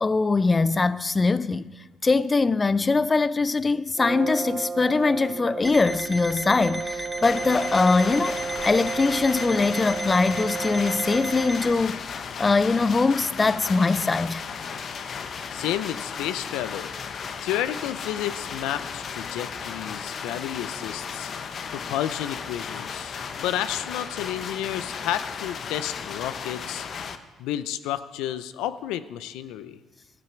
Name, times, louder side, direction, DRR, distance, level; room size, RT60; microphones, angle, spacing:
voice 1, 0.0-1.6 2.0-14.4, left 3 dB, 30° left, 0.4 m, -22 dB
Brass instrument, 4.0-11.8, right 4 dB, 40° right, 0.4 m, -33 dB
Alarm, 5.6-11.7, equal, 5° right, 1.8 m, -36 dB
sound 1, 7.2-27.2, left 6 dB, 55° left, 0.8 m, -35 dB
voice 2, 15.5-16.9 17.4-21.3 21.7-26.9 27.4-29.8, left 12 dB, 85° left, 0.5 m, -31 dB
13.0 x 12.0 x 4.5 m
supercardioid pair, 70°, 0 cm